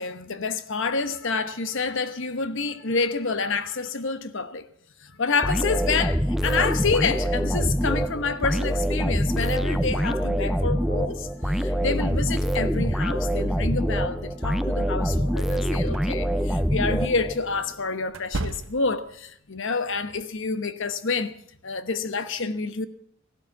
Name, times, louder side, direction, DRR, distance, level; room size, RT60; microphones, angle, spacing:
voice 1, 0.0-4.6 5.0-21.3 21.6-22.9, left 4 dB, 60° left, 1.1 m, -28 dB
sound 1, 5.4-17.6, equal, ahead, 0.6 m, -25 dB
sound 2, 15.9-16.0 18.1-19.1, right 2 dB, 65° right, 0.9 m, -33 dB
15.5 x 12.0 x 7.2 m
head